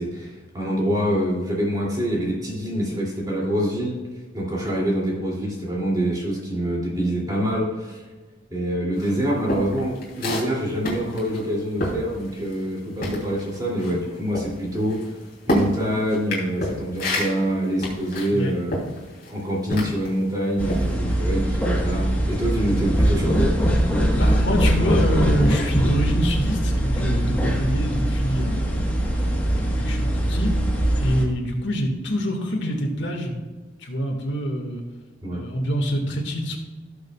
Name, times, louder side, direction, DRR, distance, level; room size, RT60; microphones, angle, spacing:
voice 1, 0.0-4.0 4.3-8.0 8.5-15.0 15.5-18.8 19.3-23.6 35.2-35.4, equal, 20° right, -4 dB, 2.8 m, -25 dB
sound 1, 9.0-12.7 13.0-20.2 20.6-20.9, equal, 50° left, 3.1 m, -29 dB
sound 2, 20.6-31.2, equal, 10° left, 1.3 m, -22 dB
voice 2, 24.2-29.2 29.6-30.6 31.0-33.4 33.8-34.8 35.3-36.6, equal, 70° left, 1 dB, 1.9 m, -26 dB
18.0 x 6.6 x 2.4 m, 1.3 s
head